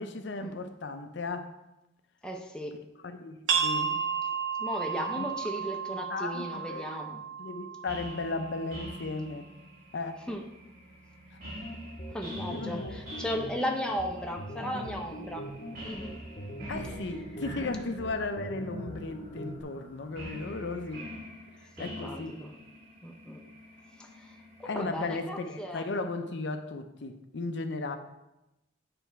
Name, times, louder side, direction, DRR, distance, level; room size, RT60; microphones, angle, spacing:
voice 1, 0.0-1.5 3.0-4.0 5.1-5.2 5.9-7.0 7.4-9.5 9.9-10.3 12.5-13.0 16.7-21.1 21.8-22.4 24.6-28.0, left 3 dB, 60° left, 8 dB, 0.5 m, -35 dB
voice 2, 2.2-2.8 4.6-7.2 10.3-10.4 12.1-15.5 15.8-16.1 21.8-22.5 23.0-23.4 24.0-25.9, equal, 5° left, 2 dB, 0.5 m, -36 dB
sound 1, 3.5-8.9, right 7 dB, 70° right, 1.2 m, -33 dB
sound 2, 7.9-25.1, equal, 50° right, 2.4 m, -46 dB
sound 3, 11.6-19.6, equal, 35° left, 0.8 m, -41 dB
9.2 x 3.4 x 4.6 m, 0.96 s
head